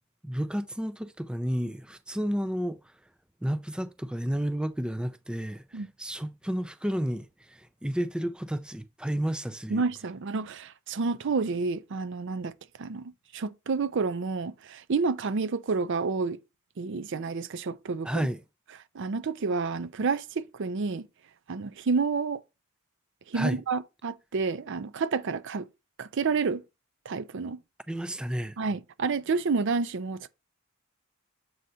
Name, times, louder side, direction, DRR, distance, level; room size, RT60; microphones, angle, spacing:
voice 1, 0.2-2.9 3.4-9.8 18.0-18.4 23.3-23.6 27.9-28.6, equal, 5° right, 0.4 m, -31 dB
voice 2, 9.7-12.5 12.8-16.4 16.8-18.3 18.9-21.1 21.5-22.4 23.3-25.7 26.0-26.6 27.1-27.6 28.6-30.3, right 4 dB, 60° right, 0.5 m, -29 dB
7.7 x 2.8 x 5.4 m
head